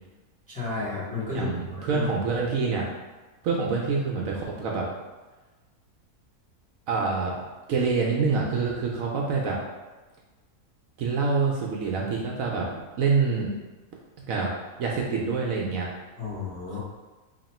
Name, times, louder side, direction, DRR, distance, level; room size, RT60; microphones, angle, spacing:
voice 1, 0.5-1.5 1.9-2.1 16.2-16.8, left 4 dB, 5° left, -8 dB, 0.7 m, -32 dB
voice 2, 1.3-2.9 3.4-4.9 6.9-7.3 7.7-9.6 11.0-12.7 13.0-13.5 14.3-14.5 14.8-15.9, right 4 dB, 70° right, -2 dB, 0.9 m, -26 dB
3.0 x 2.8 x 4.2 m, 1.2 s
omnidirectional pair, 1.6 m